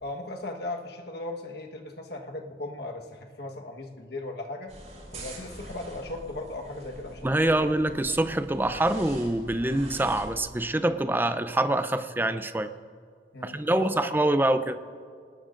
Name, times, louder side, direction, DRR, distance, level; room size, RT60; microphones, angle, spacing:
voice 1, 0.0-4.7 5.1-7.7 13.3-14.1, left 2 dB, 60° left, 2 dB, 1.4 m, -37 dB
sound 1, 4.7-10.4, right 1 dB, 40° right, 5.0 m, -44 dB
voice 2, 7.2-12.7 13.4-14.8, right 1 dB, 10° right, 10 dB, 0.6 m, -25 dB
26.5 x 19.5 x 2.6 m, 2.1 s
head